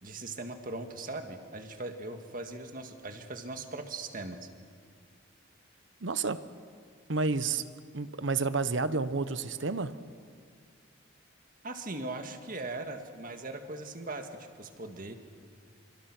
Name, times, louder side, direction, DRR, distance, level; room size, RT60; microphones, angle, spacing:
voice 1, 0.0-4.5 11.6-15.1, right 2 dB, 45° right, 6 dB, 1.8 m, -40 dB
voice 2, 6.0-6.4 7.1-7.7 7.9-9.9, right 4 dB, 65° right, 13 dB, 1.0 m, -30 dB
28.0 x 25.5 x 6.1 m, 2.1 s
head